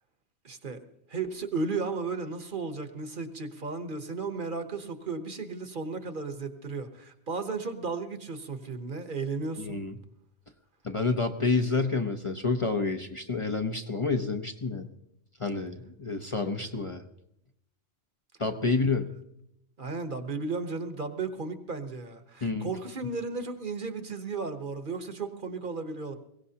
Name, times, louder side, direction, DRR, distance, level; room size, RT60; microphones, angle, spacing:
voice 1, 0.4-0.8 1.1-9.8 18.7-18.9 19.8-26.1, right 4 dB, 50° right, 8 dB, 1.2 m, -34 dB
voice 2, 9.6-10.0 10.8-14.9 15.4-17.0 18.4-19.1 22.4-22.7, left 4 dB, 30° left, 5 dB, 0.8 m, -29 dB
22.0 x 17.5 x 2.8 m, 0.79 s
omnidirectional pair, 1.1 m